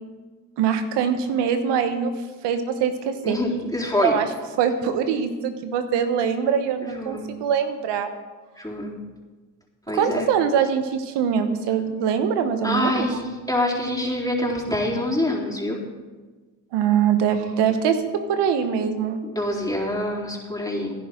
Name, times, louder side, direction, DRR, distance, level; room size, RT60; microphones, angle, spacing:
voice 1, 0.6-2.1 2.4-3.4 4.0-4.3 4.6-8.1 9.9-13.2 16.7-19.2, right 7 dB, 90° right, 9 dB, 1.1 m, -23 dB
voice 2, 3.2-4.2 6.8-7.3 8.6-9.0 9.9-10.3 12.6-15.8 19.2-20.9, left 1 dB, 10° left, -3 dB, 3.8 m, -26 dB
16.0 x 10.5 x 3.8 m, 1.3 s
supercardioid pair, 55°, 41 cm